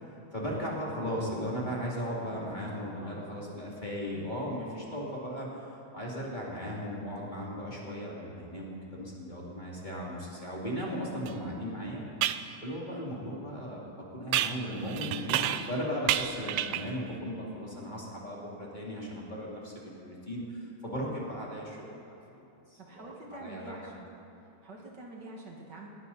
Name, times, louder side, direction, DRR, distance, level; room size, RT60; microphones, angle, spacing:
voice 1, 0.3-12.0 12.6-22.2 22.7-23.8, equal, 20° left, -5 dB, 2.7 m, -37 dB
voice 2, 2.8-3.5 4.1-4.3 22.8-24.1 24.6-25.9, right 2 dB, 55° right, -1 dB, 2.3 m, -46 dB
sound 1, 11.3-11.4 12.2-12.5 14.3-15.8 16.1-17.0, right 12 dB, 80° right, 1.5 m, -30 dB
20.0 x 17.5 x 4.1 m, 2.8 s
omnidirectional pair, 2.3 m